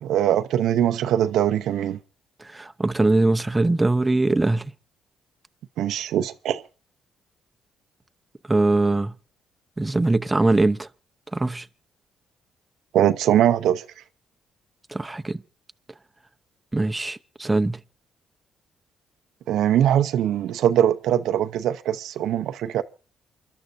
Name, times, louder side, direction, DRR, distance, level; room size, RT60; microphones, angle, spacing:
voice 1, 0.0-2.0 5.8-6.6 12.9-13.8 19.5-22.8, right 11 dB, 80° right, 0.7 m, -21 dB
voice 2, 2.4-4.7 8.5-9.1 9.8-10.9 11.3-11.7 14.9-15.4 16.7-17.8, right 2 dB, 15° right, 0.8 m, -22 dB
28.5 x 12.0 x 2.7 m
cardioid pair, 90°, 0 cm